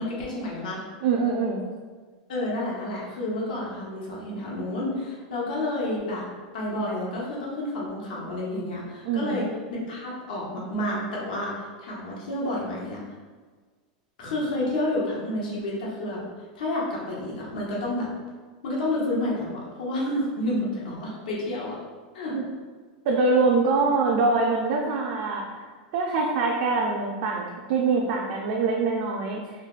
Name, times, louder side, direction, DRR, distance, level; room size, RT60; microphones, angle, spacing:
voice 1, 0.0-0.8 2.3-6.3 6.5-13.0 14.2-16.3 16.5-18.1 18.6-21.8 22.1-22.4 23.9-24.1, left 1 dB, 85° left, -5 dB, 0.9 m, -30 dB
voice 2, 1.0-1.7 9.0-9.4 22.3-22.4 23.1-25.6 25.9-29.4, right 4 dB, 50° right, -1 dB, 0.4 m, -24 dB
3.8 x 2.1 x 2.4 m, 1.5 s
supercardioid pair, 160°, 4 cm